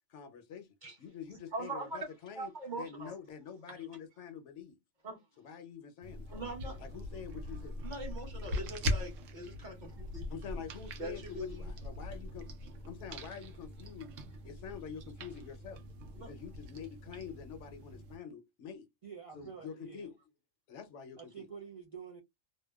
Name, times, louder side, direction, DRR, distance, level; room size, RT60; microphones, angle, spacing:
voice 1, 0.1-0.7 1.0-2.5 2.8-4.8 5.4-6.3 6.8-7.8 10.3-12.5 12.9-14.2 14.4-15.8 16.2-18.9 19.3-20.1 20.7-21.5, left 7 dB, 75° left, 0.9 m, -46 dB
voice 2, 1.5-2.1 2.3-3.1 3.7-3.9 5.0-5.2 6.3-6.8 7.8-10.4 11.0-11.7 16.1-16.3, right 2 dB, 40° right, 1.1 m, -42 dB
sound 1, 6.0-18.2, equal, 85° right, 1.0 m, -41 dB
voice 3, 19.0-20.1 21.2-22.2, right 6 dB, 65° right, 0.3 m, -48 dB
2.7 x 2.1 x 2.2 m
omnidirectional pair, 1.3 m